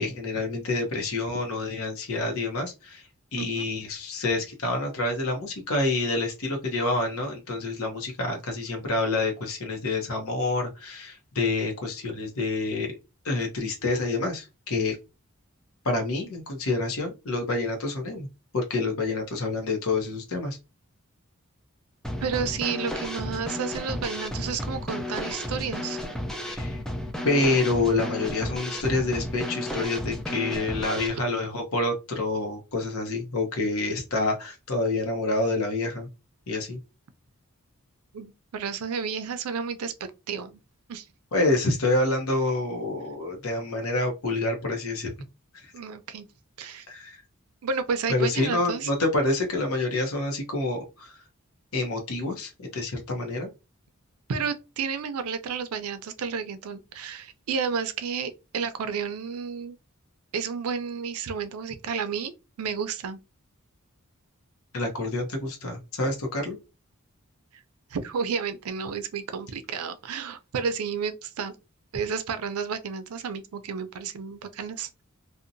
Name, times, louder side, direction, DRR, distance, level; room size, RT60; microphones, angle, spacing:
voice 1, 0.0-12.9 13.2-15.0 15.8-18.3 18.5-20.6 26.4-26.8 27.2-36.1 36.5-36.8 41.3-45.1 45.6-45.7 46.9-47.2 48.1-51.2 51.7-53.5 64.7-66.6, left 2 dB, 75° left, 0.7 m, -27 dB
voice 2, 3.4-3.7 22.2-26.0 38.1-39.9 40.3-40.6 40.9-41.1 45.7-46.2 46.6-46.9 47.6-48.9 54.3-59.8 60.3-62.3 62.6-63.2 67.5-67.6 67.9-71.5 71.9-75.0, right 6 dB, 90° right, 0.4 m, -31 dB
Drum kit / Snare drum, 22.0-31.1, left 1 dB, 5° left, 0.4 m, -33 dB
2.7 x 2.1 x 2.6 m
head